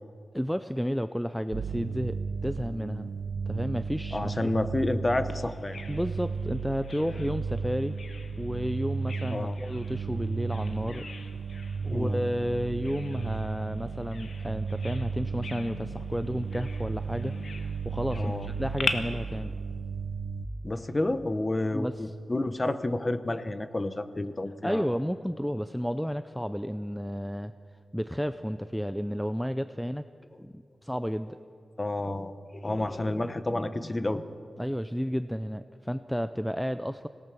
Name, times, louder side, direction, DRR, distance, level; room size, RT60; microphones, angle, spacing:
voice 1, 0.3-3.1 3.5-4.5 5.9-8.0 8.4-11.1 11.8-19.5 21.7-22.1 24.6-27.5 27.9-30.1 30.4-31.4 34.6-37.1, equal, ahead, 11 dB, 0.4 m, -32 dB
sound 1, 1.5-20.5, right 5 dB, 75° right, 0.8 m, -34 dB
voice 2, 4.1-5.8 9.3-9.6 11.9-12.2 18.1-18.5 20.6-24.9 31.8-34.2, left 2 dB, 20° left, 12 dB, 0.8 m, -30 dB
Bird vocalization bird call bird song, 5.3-18.9, left 4 dB, 60° left, 1.3 m, -42 dB
25.5 x 18.0 x 6.0 m, 2.4 s
wide cardioid pair, 140°, 0 cm